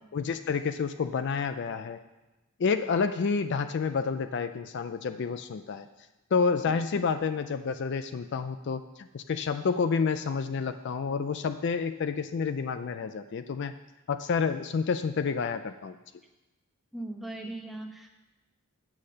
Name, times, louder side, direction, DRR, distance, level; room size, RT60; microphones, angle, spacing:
voice 1, 0.1-2.0 2.6-5.9 6.3-13.7 14.1-16.0, left 5 dB, 50° left, 9 dB, 0.4 m, -29 dB
voice 2, 16.9-18.1, right 2 dB, ahead, 2 dB, 0.9 m, -39 dB
8.5 x 7.2 x 6.4 m, 1.0 s
head